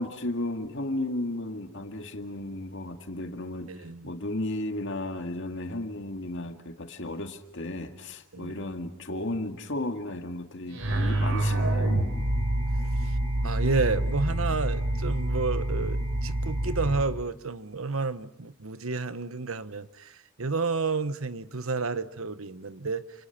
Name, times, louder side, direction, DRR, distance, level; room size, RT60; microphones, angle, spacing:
voice 1, 0.0-3.7 4.0-12.0, left 1 dB, 65° left, 2.2 m, -34 dB
voice 2, 3.7-4.1 8.3-8.5 13.4-20.1 20.4-23.0, right 4 dB, 85° right, 1.2 m, -30 dB
sound 1, 10.7-17.0, right 1 dB, 70° right, 4.1 m, -27 dB
30.0 x 28.5 x 6.0 m
head